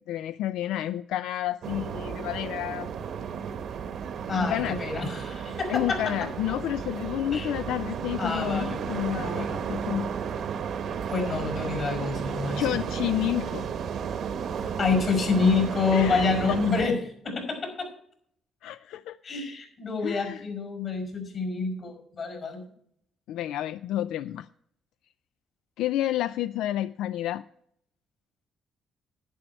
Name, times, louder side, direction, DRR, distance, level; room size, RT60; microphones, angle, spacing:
voice 1, 0.1-2.9 4.4-4.8 5.7-10.1 12.6-13.7 15.9-16.6 18.6-19.2 20.0-20.4 23.3-24.5 25.8-27.4, left 13 dB, 90° left, 14 dB, 0.3 m, -30 dB
sound 1, 1.6-16.9, right 7 dB, 70° right, 1.0 m, -33 dB
voice 2, 4.3-6.3 7.3-7.5 8.2-8.8 9.2-9.6 11.1-12.7 14.8-17.0 17.2-17.9 19.2-22.6, left 4 dB, 50° left, 5 dB, 5.2 m, -27 dB
11.0 x 10.0 x 4.3 m, 0.67 s
cardioid pair, 90°, 0 cm